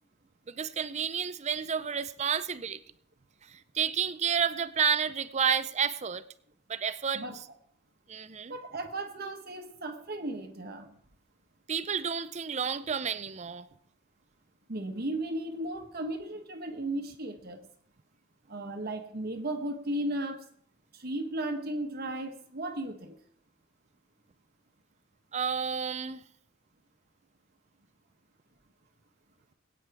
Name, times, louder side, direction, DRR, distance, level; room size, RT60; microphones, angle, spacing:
voice 1, 0.5-2.8 3.5-6.2 6.7-7.2 8.1-8.5 11.7-13.7 25.3-26.2, right 7 dB, 35° right, 0.5 m, -30 dB
voice 2, 7.1-7.5 8.5-11.0 14.7-17.7 18.5-20.4 20.9-23.2, right 1 dB, 50° right, 1.2 m, -35 dB
21.5 x 9.2 x 3.5 m
head